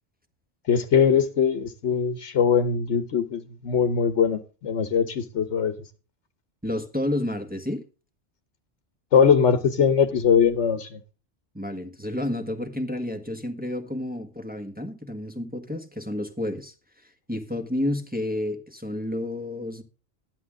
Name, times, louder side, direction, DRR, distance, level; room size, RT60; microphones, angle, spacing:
voice 1, 0.7-5.7 9.1-11.0, left 7 dB, 85° left, 1.2 m, -21 dB
voice 2, 6.6-7.8 11.5-19.8, left 1 dB, 10° right, 1.5 m, -30 dB
13.0 x 10.5 x 3.6 m
omnidirectional pair, 1.1 m